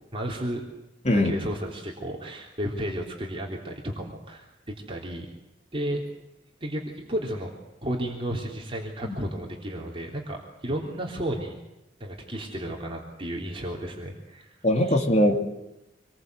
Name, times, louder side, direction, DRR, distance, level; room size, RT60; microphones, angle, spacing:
voice 1, 0.1-0.6 1.1-4.5 4.9-5.3 5.7-6.0 6.6-7.5 7.8-11.5 12.0-14.5 14.8-15.0, right 1 dB, 30° right, -1 dB, 3.4 m, -33 dB
voice 2, 14.6-15.5, left 1 dB, 40° left, 2 dB, 3.0 m, -21 dB
26.5 x 21.5 x 8.1 m, 0.91 s
head